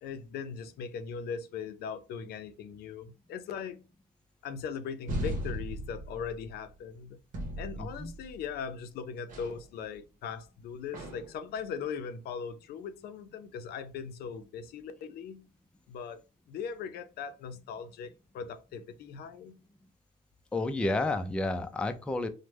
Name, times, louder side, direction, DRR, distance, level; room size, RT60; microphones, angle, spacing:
voice 1, 0.0-3.8 4.4-7.2 7.6-15.4 15.9-19.6, left 6 dB, 70° left, 0.5 m, -39 dB
sound 1, 5.1-6.7 7.3-8.6 9.3-9.7 10.9-11.4, equal, 55° right, 1.0 m, -37 dB
voice 2, 7.8-8.1 20.5-22.3, left 2 dB, 5° left, 0.3 m, -31 dB
3.3 x 2.1 x 3.0 m
cardioid pair, 110°, 17 cm